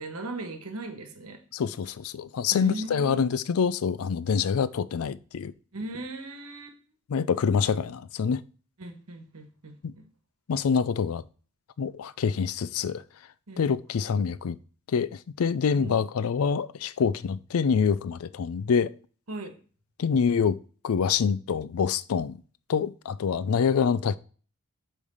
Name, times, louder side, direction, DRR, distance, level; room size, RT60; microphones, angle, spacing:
voice 1, 0.0-1.4 2.5-3.3 5.7-6.8 8.8-9.8 13.5-13.7 15.8-16.0 19.3-19.5, right 2 dB, 80° right, 1.3 m, -38 dB
voice 2, 1.5-5.5 7.1-8.4 9.8-9.9 10.5-11.2 11.8-13.0 13.6-14.6 14.9-18.9 20.0-20.6 20.8-22.4 22.7-24.2, left 6 dB, 75° left, 0.4 m, -26 dB
8.5 x 3.3 x 5.5 m
head